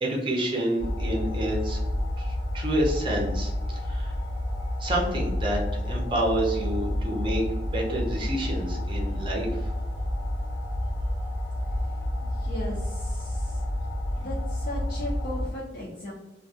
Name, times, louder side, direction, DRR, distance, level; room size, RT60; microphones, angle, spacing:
voice 1, 0.0-1.8 2.2-4.2 4.8-9.7, right 1 dB, 30° right, -2 dB, 0.6 m, -29 dB
sound 1, 0.8-15.5, left 1 dB, 65° left, 0.9 m, -30 dB
voice 2, 12.4-13.6 14.2-16.1, left 1 dB, 50° left, -6 dB, 0.5 m, -36 dB
2.2 x 2.2 x 2.7 m, 1.0 s
head